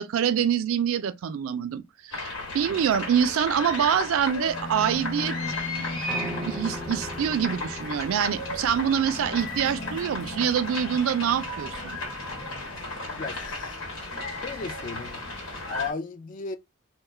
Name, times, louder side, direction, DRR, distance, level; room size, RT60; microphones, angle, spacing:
voice 1, 0.0-2.3 2.5-5.4 6.4-12.0, right 8 dB, 90° right, 0.3 m, -25 dB
sound 1, 2.1-15.9, left 2 dB, 85° left, 1.2 m, -35 dB
sound 2, 4.4-13.4, left 1 dB, 60° left, 0.8 m, -40 dB
Piano, 6.1-12.2, right 1 dB, 5° left, 0.6 m, -42 dB
voice 2, 13.2-13.8 14.4-15.2 15.7-16.6, left 4 dB, 40° left, 0.3 m, -35 dB
2.2 x 2.1 x 3.1 m
head